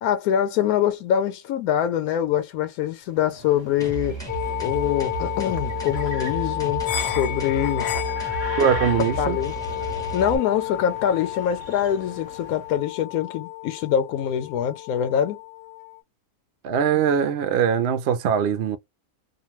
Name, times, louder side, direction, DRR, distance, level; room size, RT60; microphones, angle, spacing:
voice 1, 0.0-4.2 4.6-7.9 9.2-9.6 10.1-15.4, left 9 dB, 85° left, 1.1 m, -24 dB
sound 1, 3.0-12.8, right 3 dB, 40° right, 0.9 m, -42 dB
sound 2, 3.8-10.4, right 5 dB, 5° left, 0.7 m, -33 dB
sound 3, 4.3-16.0, left 16 dB, 60° left, 0.7 m, -31 dB
voice 2, 8.6-9.4 16.6-18.8, right 8 dB, 65° right, 0.6 m, -21 dB
2.5 x 2.2 x 3.0 m
omnidirectional pair, 1.5 m